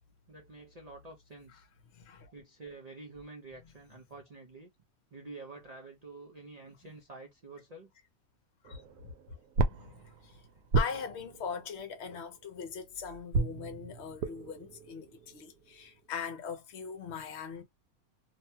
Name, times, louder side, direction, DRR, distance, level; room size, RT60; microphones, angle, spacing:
voice 1, 0.3-1.6 2.3-4.7 5.1-7.9, right 3 dB, 50° right, 0.5 m, -48 dB
voice 2, 1.9-2.3 3.6-3.7 8.6-9.1 9.7-10.4 10.7-17.6, left 6 dB, 55° left, 0.9 m, -41 dB
sound 1, 8.6-12.7 13.3-16.3, right 3 dB, 80° right, 1.0 m, -35 dB
2.7 x 2.2 x 2.7 m
omnidirectional pair, 1.5 m